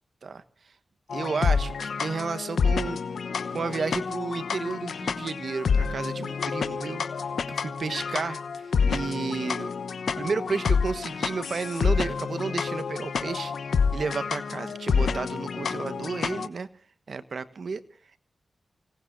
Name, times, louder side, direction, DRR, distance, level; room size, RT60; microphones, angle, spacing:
sound 1, 1.1-16.5, left 5 dB, 85° left, 1.0 m, -28 dB
voice 1, 1.1-3.0 3.5-7.1 7.5-9.7 10.2-13.5 13.9-16.7 17.1-17.8, right 4 dB, 70° right, 13 dB, 1.4 m, -32 dB
30.0 x 18.0 x 2.7 m, 0.41 s
cardioid pair, 50°, 0 cm